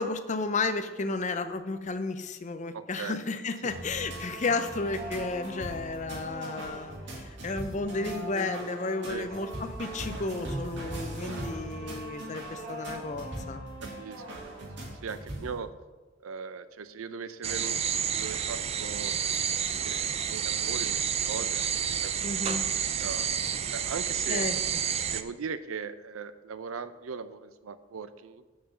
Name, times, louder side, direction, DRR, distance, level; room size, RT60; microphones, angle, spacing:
voice 1, 0.0-13.6 22.2-22.6 24.3-24.6, left 3 dB, 35° left, 10 dB, 0.5 m, -33 dB
voice 2, 2.7-3.2 3.6-3.8 9.1-9.3 11.2-11.6 13.8-14.7 15.0-15.7 16.2-19.1 19.8-21.7 22.0-22.5 23.0-23.3 23.7-24.5 25.1-28.4, right 5 dB, 85° right, 13 dB, 0.5 m, -39 dB
sound 1, 3.7-15.6, right 1 dB, 60° right, 2.1 m, -39 dB
sound 2, 17.4-25.2, right 8 dB, 30° right, 0.4 m, -30 dB
6.3 x 6.0 x 7.0 m, 1.2 s
head